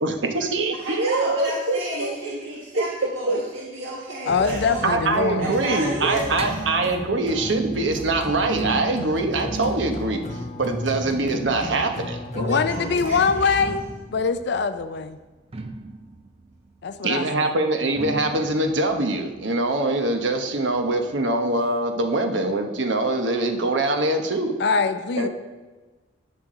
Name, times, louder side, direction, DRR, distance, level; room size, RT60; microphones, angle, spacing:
voice 1, 0.0-2.1 2.8-2.9 3.3-3.4 4.8-10.2 10.6-12.2 17.0-24.5 25.2-25.3, right 2 dB, 70° right, 5 dB, 1.0 m, -23 dB
voice 2, 0.8-4.8 5.4-6.3 12.3-13.5, right 1 dB, 90° right, -4 dB, 1.6 m, -31 dB
voice 3, 4.2-5.5 12.4-13.8 14.1-15.2 16.8-17.5 24.6-25.3, left 5 dB, 60° left, 11 dB, 0.4 m, -23 dB
sound 1, 4.3-13.7, left 1 dB, 40° left, 1.1 m, -34 dB
sound 2, 4.7-12.2 13.4-20.8 21.0-21.1 21.4-21.5 22.1-22.2, right 3 dB, 30° right, 0.6 m, -38 dB
16.0 x 6.0 x 3.8 m, 1.2 s
head